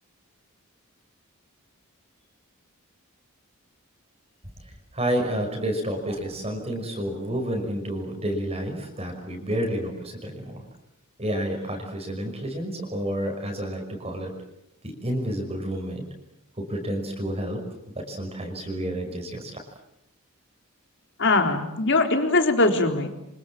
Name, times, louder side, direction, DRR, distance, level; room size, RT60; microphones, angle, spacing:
voice 1, 4.9-10.6 11.2-14.3 14.8-16.0 16.6-17.6 17.9-19.6, equal, 30° right, 3 dB, 5.6 m, -30 dB
voice 2, 21.2-23.2, left 2 dB, 55° left, 5 dB, 3.8 m, -21 dB
27.5 x 26.0 x 7.5 m, 0.83 s
head